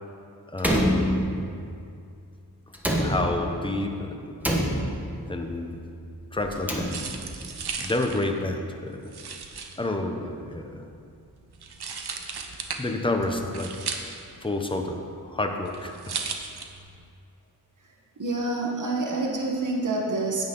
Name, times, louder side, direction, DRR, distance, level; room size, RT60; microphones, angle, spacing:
voice 1, 0.5-1.4 3.0-4.4 5.2-5.8 6.3-6.9 7.8-9.1 9.8-10.8 12.8-13.8 14.4-16.2, left 2 dB, 15° left, 3 dB, 0.8 m, -29 dB
Slam, 0.6-1.7 2.7-3.7 4.4-5.3 6.4-7.4, equal, 5° right, 1.2 m, -26 dB
sound 1, 6.5-17.1, right 5 dB, 70° right, 0.8 m, -37 dB
voice 2, 18.2-20.4, right 2 dB, 50° right, -1 dB, 1.3 m, -27 dB
9.3 x 9.0 x 3.8 m, 2.4 s
wide cardioid pair, 75°, 40 cm